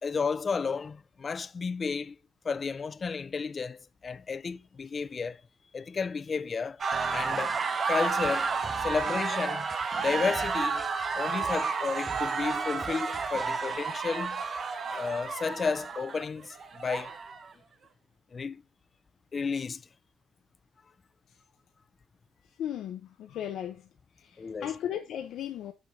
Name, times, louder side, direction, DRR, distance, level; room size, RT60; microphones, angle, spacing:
voice 1, 0.0-2.2 2.4-5.4 5.7-6.8 7.1-7.6 7.9-8.5 8.8-9.7 10.0-10.8 11.1-14.4 14.9-17.1 18.3-18.6 19.3-19.8 24.4-24.7, left 5 dB, 40° left, 0.5 m, -32 dB
sound 1, 6.8-17.5, right 5 dB, 50° right, 1.3 m, -31 dB
sound 2, 6.9-13.8, right 3 dB, 25° right, 0.5 m, -42 dB
voice 2, 22.6-23.8 24.2-25.7, left 10 dB, 75° left, 0.7 m, -36 dB
7.0 x 6.3 x 3.7 m
cardioid pair, 90°, 0 cm